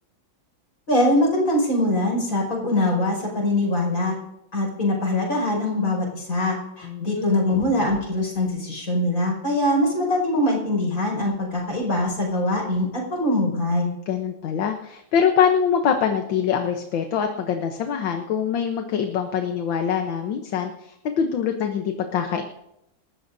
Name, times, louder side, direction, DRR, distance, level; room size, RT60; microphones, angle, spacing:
voice 1, 0.9-4.1 4.5-13.9, left 1 dB, 45° left, -1 dB, 6.0 m, -23 dB
voice 2, 6.8-7.2 14.1-22.4, left 7 dB, 75° left, 5 dB, 1.7 m, -24 dB
28.0 x 13.5 x 2.7 m, 0.84 s
omnidirectional pair, 2.1 m